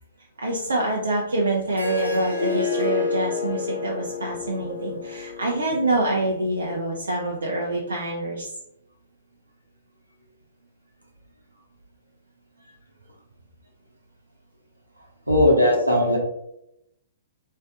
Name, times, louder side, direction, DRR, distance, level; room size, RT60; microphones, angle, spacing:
voice 1, 0.4-8.5, right 2 dB, 70° right, -2 dB, 0.6 m, -26 dB
Harp, 1.7-6.9, left 4 dB, 80° left, 1.1 m, -29 dB
voice 2, 15.3-16.2, left 1 dB, 85° right, -1 dB, 1.1 m, -18 dB
3.1 x 2.8 x 3.7 m, 0.80 s
figure-of-eight pair, 115°, 0 cm